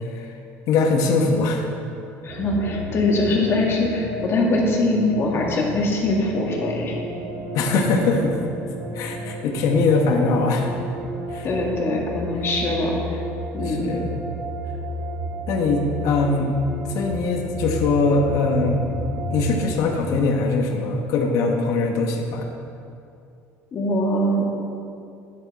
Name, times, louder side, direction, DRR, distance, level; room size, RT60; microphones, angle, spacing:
voice 1, 0.7-1.7 7.5-8.4 8.9-10.7 11.3-11.5 13.7-14.1 15.5-16.6 16.9-18.9 19.3-22.5, left 3 dB, 70° left, 2 dB, 1.3 m, -21 dB
voice 2, 2.2-6.9 11.4-13.0 13.5-13.9 23.7-24.5, left 2 dB, 45° left, -1 dB, 1.9 m, -22 dB
sound 1, 2.3-20.0, right 1 dB, 75° right, 2.1 m, -32 dB
10.5 x 7.3 x 4.2 m, 2.6 s
cardioid pair, 110°, 6 cm